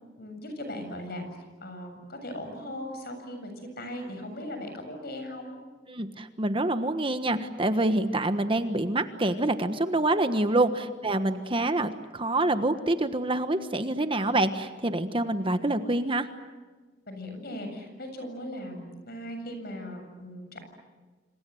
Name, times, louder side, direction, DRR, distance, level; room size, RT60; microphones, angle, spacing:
voice 1, 0.2-1.2 1.6-5.6 10.6-10.7 17.1-20.6, left 1 dB, 60° left, 6 dB, 7.5 m, -38 dB
voice 2, 5.9-16.3, right 2 dB, 30° right, 9 dB, 1.3 m, -26 dB
28.0 x 27.0 x 7.9 m, 1.3 s
head